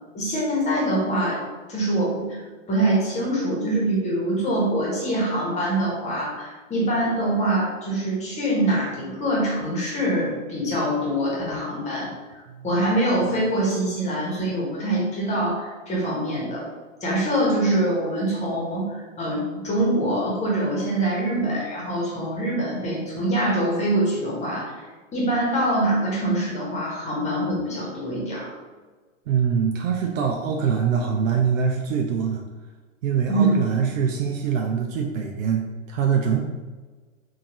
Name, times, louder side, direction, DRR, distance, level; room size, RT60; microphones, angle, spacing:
voice 1, 0.1-1.4 1.7-2.4 2.7-12.1 12.6-16.7 17.0-24.7 25.1-28.5 33.3-33.6, right 1 dB, 15° left, -4 dB, 1.2 m, -24 dB
voice 2, 29.3-32.4 33.0-36.4, right 7 dB, 75° right, 2 dB, 0.6 m, -24 dB
3.7 x 2.7 x 2.9 m, 1.3 s
hypercardioid pair, 125°, 40 cm